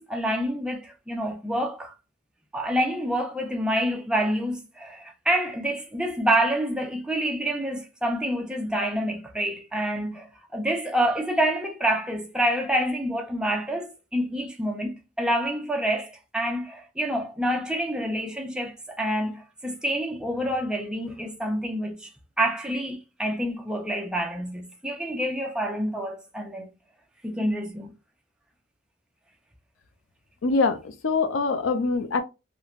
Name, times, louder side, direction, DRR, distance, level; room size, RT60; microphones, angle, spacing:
voice 1, 0.0-1.9 2.5-22.1 22.4-26.7 27.2-27.9, right 1 dB, 5° right, 0.5 m, -27 dB
voice 2, 30.4-32.2, left 4 dB, 75° left, 0.5 m, -24 dB
3.1 x 2.1 x 2.4 m
head